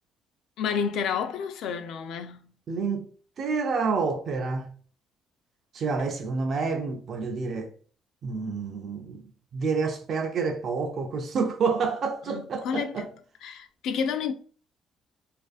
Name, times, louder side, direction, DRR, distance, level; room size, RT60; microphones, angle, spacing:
voice 1, 0.6-2.4 12.3-13.1 13.4-14.3, left 6 dB, 70° left, 0.4 m, -30 dB
voice 2, 2.7-3.1 3.4-4.7 5.7-7.7 8.2-9.2 9.5-13.1, right 4 dB, 45° right, 0.4 m, -28 dB
2.4 x 2.4 x 2.3 m
cardioid pair, 120°, 0 cm